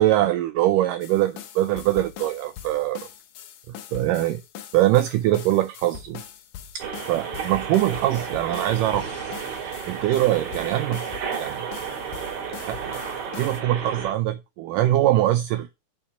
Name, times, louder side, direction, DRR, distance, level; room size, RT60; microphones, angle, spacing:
voice 1, 0.0-3.0 3.9-4.4 4.7-6.2 7.1-9.1 9.9-11.0 11.3-11.6 12.4-15.7, right 14 dB, 90° right, 1.9 m, -23 dB
sound 1, 1.0-13.6, left 9 dB, 70° left, 2.4 m, -42 dB
sound 2, 6.8-14.1, right 6 dB, 50° right, 3.3 m, -32 dB
7.1 x 5.7 x 5.6 m
omnidirectional pair, 4.5 m